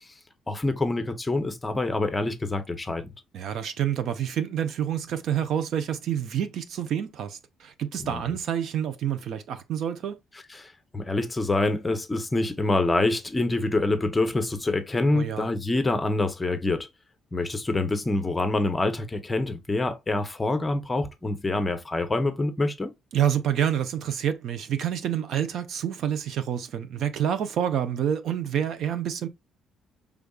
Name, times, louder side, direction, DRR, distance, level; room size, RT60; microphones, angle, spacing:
voice 1, 0.5-3.1 8.0-8.4 10.5-16.9 17.3-22.9, left 2 dB, 15° left, 0.7 m, -26 dB
voice 2, 3.3-10.2 15.1-15.5 23.1-29.3, right 9 dB, 60° right, 0.6 m, -28 dB
5.1 x 3.5 x 2.3 m
cardioid pair, 155°, 0 cm